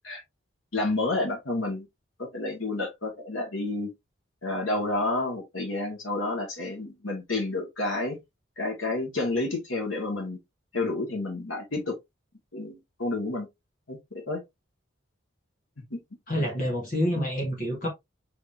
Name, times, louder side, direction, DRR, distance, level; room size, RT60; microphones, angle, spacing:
voice 1, 0.7-1.9 2.2-3.9 4.4-8.2 8.6-10.4 10.7-12.0 12.5-13.5 13.9-14.4 15.9-16.0, left 2 dB, 80° left, 1.9 m, -30 dB
voice 2, 16.3-17.9, equal, 40° left, 1.8 m, -27 dB
5.0 x 3.9 x 2.7 m
head